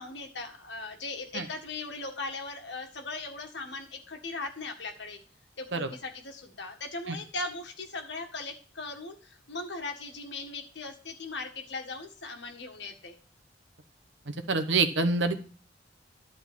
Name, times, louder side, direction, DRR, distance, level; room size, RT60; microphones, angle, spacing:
voice 1, 0.0-5.2 5.6-13.1, left 3 dB, 65° left, 4 dB, 1.7 m, -39 dB
voice 2, 14.3-15.4, right 3 dB, 70° right, 9 dB, 1.0 m, -26 dB
11.5 x 4.0 x 7.4 m, 0.39 s
head